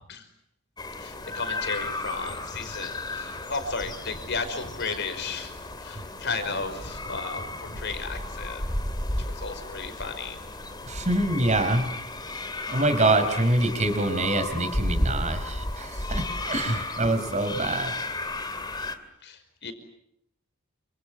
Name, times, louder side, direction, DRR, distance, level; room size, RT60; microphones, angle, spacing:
sound 1, 0.8-19.0, left 2 dB, 20° left, 2.7 m, -34 dB
voice 1, 1.0-8.6 9.3-10.4 19.2-19.7, left 4 dB, 55° left, 8 dB, 5.5 m, -34 dB
voice 2, 10.8-11.9 12.7-17.9, right 2 dB, 35° right, 8 dB, 5.1 m, -25 dB
29.5 x 26.5 x 7.6 m, 0.76 s
head